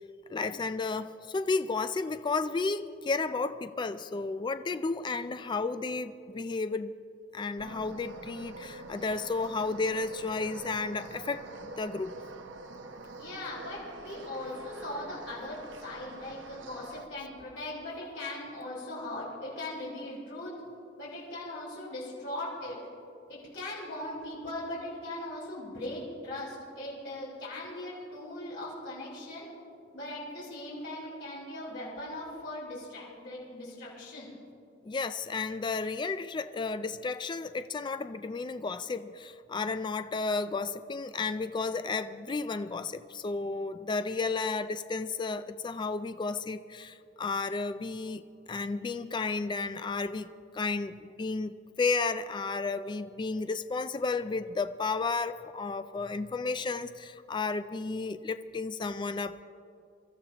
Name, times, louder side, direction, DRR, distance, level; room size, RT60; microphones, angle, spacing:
voice 1, 0.3-6.9 7.3-12.2 34.8-48.2 48.5-50.3 50.5-59.4, left 4 dB, 25° left, 11 dB, 0.3 m, -32 dB
sound 1, 7.6-17.1, right 3 dB, 80° right, 0.9 m, -45 dB
voice 2, 13.2-20.5 21.0-22.8 23.3-29.5 29.9-34.3, left 1 dB, 65° left, -7 dB, 4.3 m, -39 dB
24.5 x 13.5 x 2.9 m, 2.6 s
head